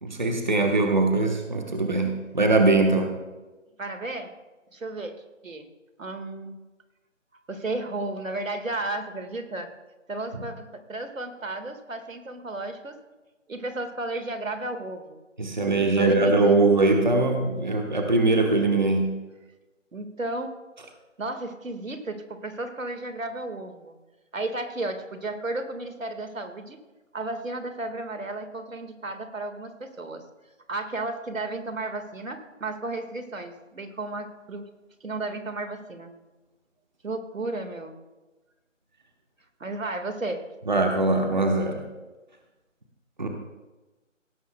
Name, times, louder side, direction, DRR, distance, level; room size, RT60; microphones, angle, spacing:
voice 1, 0.0-3.1 15.4-19.1 40.7-41.8 43.2-43.3, right 2 dB, 35° right, 3 dB, 1.1 m, -22 dB
voice 2, 3.8-4.3 4.7-5.7 6.0-6.6 7.5-9.7 10.1-12.9 13.5-15.2 16.0-16.6 19.9-20.5 21.2-23.9 24.3-26.8 27.1-30.2 30.7-34.6 35.0-36.1 37.0-38.0 39.6-40.4, right 2 dB, 85° right, 7 dB, 1.8 m, -33 dB
17.5 x 12.5 x 2.2 m, 1.2 s
figure-of-eight pair, 175°, 39 cm